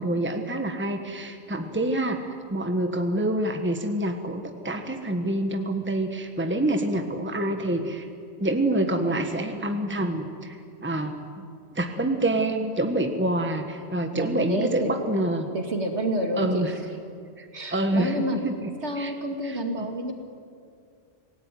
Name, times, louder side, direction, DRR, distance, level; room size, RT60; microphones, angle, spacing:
voice 1, 0.0-8.1 8.4-15.5 16.4-16.7 17.4-19.1 19.4-19.9, right 1 dB, 10° right, 5 dB, 1.5 m, -27 dB
voice 2, 14.1-14.9 15.5-16.8 17.5-18.4 18.8-20.1, right 1 dB, 65° right, 3 dB, 2.7 m, -29 dB
27.0 x 18.5 x 9.3 m, 2.3 s
omnidirectional pair, 1.2 m